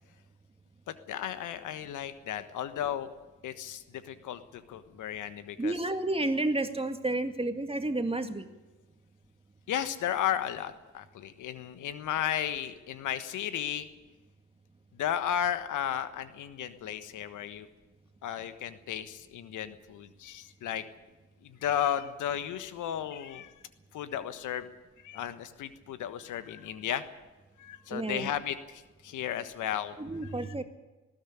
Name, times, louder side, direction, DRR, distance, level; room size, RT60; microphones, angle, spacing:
voice 1, 0.9-3.1 3.4-5.7 9.7-13.9 15.0-17.7 18.2-20.8 21.4-23.5 23.9-24.7 25.0-27.0 27.6-29.9, left 10 dB, 65° left, 11 dB, 1.4 m, -34 dB
voice 2, 5.6-8.5 27.9-28.3 30.0-30.6, right 2 dB, 15° right, 7 dB, 2.1 m, -31 dB
20.0 x 13.0 x 10.0 m, 1.2 s
hypercardioid pair, 45°, 33 cm